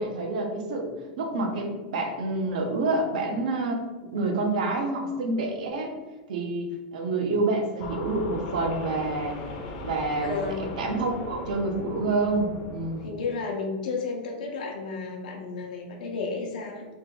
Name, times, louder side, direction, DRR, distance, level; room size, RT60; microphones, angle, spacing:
voice 1, 0.0-3.8 4.1-5.9 6.3-9.4 9.8-13.1, right 2 dB, 75° right, 2 dB, 0.8 m, -28 dB
sound 1, 7.8-13.1, left 2 dB, 40° left, 0.6 m, -38 dB
voice 2, 10.2-10.7 12.9-16.9, left 4 dB, 80° left, 0 dB, 0.7 m, -32 dB
3.2 x 2.9 x 3.6 m, 1.2 s
supercardioid pair, 170°, 4 cm